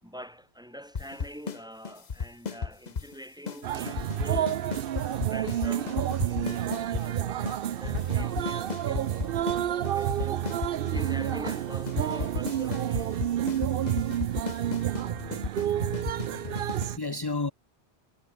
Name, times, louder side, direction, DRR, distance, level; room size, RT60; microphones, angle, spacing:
voice 1, 0.0-4.7 5.1-10.5 10.9-13.2, equal, 5° right, 5.1 m, -45 dB
sound 1, 0.9-1.6 1.8-3.1 3.5-3.6 3.9-7.1 7.5-7.6 7.8-9.6 9.8-11.1 11.5-11.6 11.9-16.9, left 5 dB, 45° left, 1.1 m, -34 dB
sound 2, 3.6-17.0, right 11 dB, 65° right, 0.8 m, -29 dB
sound 3, 7.4-7.5 7.9-9.2 9.6-11.0 11.3-12.7 13.0-13.1, left 2 dB, 65° left, 3.9 m, -53 dB
voice 2, 16.3-17.5, left 3 dB, 25° left, 1.1 m, -33 dB
omnidirectional pair, 1.1 m